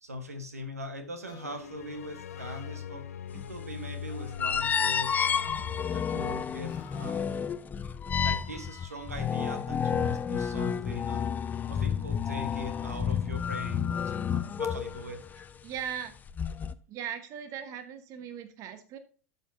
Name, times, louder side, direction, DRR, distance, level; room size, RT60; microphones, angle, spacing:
voice 1, 0.0-3.0 3.3-5.4 5.9-7.3 8.1-11.3 11.7-15.2, equal, 85° right, 8 dB, 1.2 m, -41 dB
sound 1, 1.2-1.7 2.2-2.9 4.0-4.5 5.1-5.9 6.6-7.1 8.5-9.0, left 9 dB, 50° left, 1.5 m, -53 dB
sound 2, 1.4-6.6, left 9 dB, 75° left, 0.5 m, -42 dB
sound 3, 3.3-3.5 4.4-15.4 16.3-16.7, left 7 dB, 20° left, 0.5 m, -30 dB
voice 2, 15.6-16.1 16.9-19.0, right 9 dB, 45° right, 10 dB, 1.0 m, -38 dB
12.0 x 5.3 x 2.6 m, 0.38 s
figure-of-eight pair, 85°, 8 cm